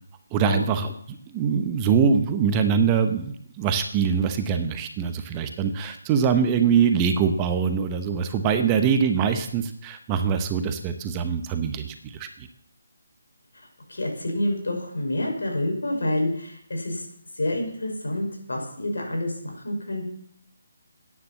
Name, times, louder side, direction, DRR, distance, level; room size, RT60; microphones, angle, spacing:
voice 1, 0.3-12.5, right 6 dB, 20° right, 7 dB, 1.0 m, -23 dB
voice 2, 13.9-17.0 17.4-20.1, left 1 dB, 80° left, 1 dB, 6.0 m, -28 dB
11.5 x 9.8 x 7.0 m, 0.65 s
figure-of-eight pair, 155°, 0 cm